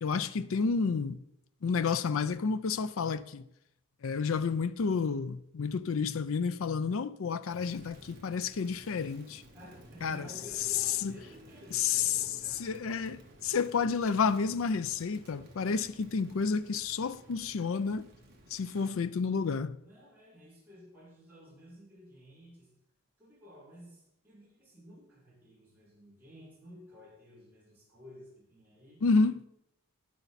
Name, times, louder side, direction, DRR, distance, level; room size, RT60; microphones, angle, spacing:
voice 1, 0.0-1.2 1.6-3.5 4.0-9.4 10.0-10.3 11.0-11.2 11.7-12.2 12.6-18.1 18.5-19.8 29.0-29.4, left 5 dB, 70° left, 0.4 m, -30 dB
Crackle, 7.4-19.0, right 1 dB, 45° right, 2.1 m, -54 dB
voice 2, 9.5-12.8 19.8-22.7 23.2-29.1, left 1 dB, 10° right, 5.7 m, -53 dB
12.0 x 11.0 x 4.1 m
head